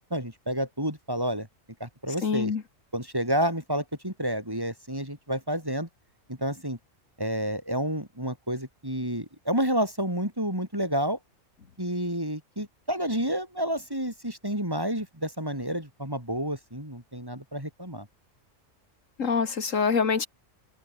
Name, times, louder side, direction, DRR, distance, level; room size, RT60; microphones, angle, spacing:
voice 1, 0.1-1.5 1.8-2.5 2.9-5.9 6.3-6.8 7.2-11.2 11.8-18.1, equal, 15° right, 5.9 m, -30 dB
voice 2, 2.2-2.6 19.2-20.3, left 5 dB, 80° left, 2.1 m, -25 dB
omnidirectional pair, 1.3 m